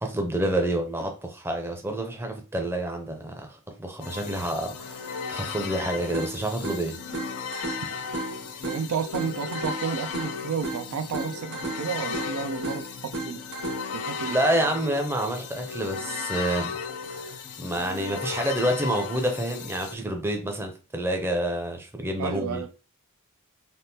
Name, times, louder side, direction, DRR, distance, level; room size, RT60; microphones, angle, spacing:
voice 1, 0.0-7.0 14.2-16.7 17.1-22.6, right 1 dB, 10° right, 0.5 m, -28 dB
sound 1, 4.0-20.0, left 6 dB, 80° left, 0.5 m, -36 dB
sound 2, 6.1-14.1, right 2 dB, 65° right, 1.6 m, -36 dB
voice 2, 8.7-13.4 13.9-14.4 22.2-22.7, right 6 dB, 85° right, 0.4 m, -31 dB
3.5 x 2.4 x 2.7 m
head